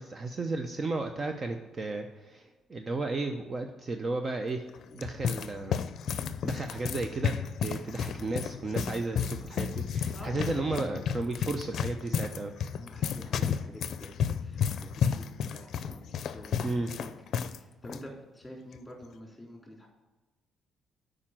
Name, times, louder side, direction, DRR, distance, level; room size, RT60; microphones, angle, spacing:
voice 1, 0.0-4.6 4.9-5.8 6.4-12.5 16.6-16.9, right 3 dB, 35° right, 5 dB, 0.7 m, -34 dB
sound 1, 4.7-17.6 17.8-18.0 18.7-19.0, left 7 dB, 65° left, 0.5 m, -32 dB
voice 2, 10.1-10.8 12.7-14.1 14.4-15.3 15.5-17.1 17.5-19.9, equal, 5° left, -1 dB, 3.5 m, -47 dB
8.5 x 5.1 x 7.6 m, 1.2 s
cardioid pair, 90°, 0 cm